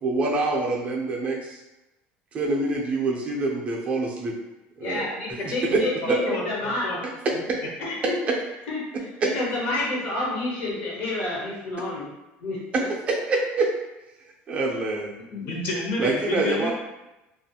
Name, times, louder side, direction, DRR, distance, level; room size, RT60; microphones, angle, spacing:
voice 1, 0.0-1.6 2.3-4.3 4.8-5.1 5.4-5.8 6.1-6.2 8.3-8.4 9.2-9.3 12.7-13.7 14.5-15.1 16.0-16.7, right 3 dB, 30° right, -1 dB, 0.5 m, -25 dB
voice 2, 4.8-6.9 7.8-8.1 8.7-8.8 9.3-12.1 12.4-12.9, left 2 dB, 70° left, -5 dB, 1.2 m, -29 dB
voice 3, 6.2-7.0 15.3-16.7, left 2 dB, 50° left, -3 dB, 0.9 m, -30 dB
2.5 x 2.4 x 2.7 m, 0.98 s
cardioid pair, 140°, 4 cm